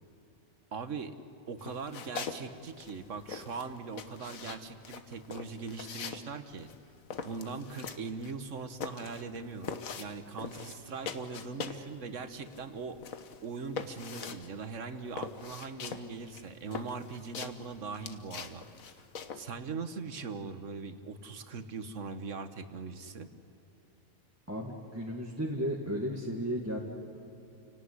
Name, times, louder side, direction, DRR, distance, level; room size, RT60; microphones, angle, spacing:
voice 1, 0.7-1.2 1.5-6.7 7.2-13.0 13.4-19.0 19.3-23.3, right 4 dB, 65° right, 9 dB, 1.6 m, -40 dB
sound 1, 1.6-2.4 2.7-11.9 12.2-19.5, left 6 dB, 80° left, 1.6 m, -42 dB
voice 2, 24.5-26.8, equal, 10° right, -2 dB, 2.0 m, -34 dB
29.5 x 18.0 x 9.7 m, 3.0 s
omnidirectional pair, 1.4 m